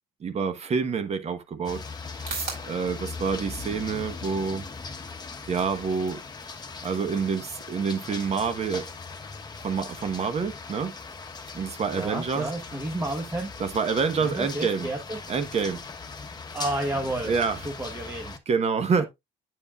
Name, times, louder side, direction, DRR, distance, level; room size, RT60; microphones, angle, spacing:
voice 1, 0.2-1.8 2.1-2.4 2.7-4.7 5.5-6.2 6.8-8.9 9.6-11.0 11.5-12.5 13.6-14.9 15.3-15.8 17.0-17.7 18.5-19.0, right 5 dB, 40° right, 1.2 m, -27 dB
sound 1, 1.4-17.7, right 4 dB, 60° right, 4.6 m, -47 dB
sound 2, 1.6-18.4, left 4 dB, 25° left, 1.1 m, -39 dB
voice 2, 11.9-13.5 14.2-15.2 16.5-17.4 17.6-18.4, right 1 dB, 15° right, 1.2 m, -31 dB
8.6 x 6.9 x 2.4 m
cardioid pair, 110°, 17 cm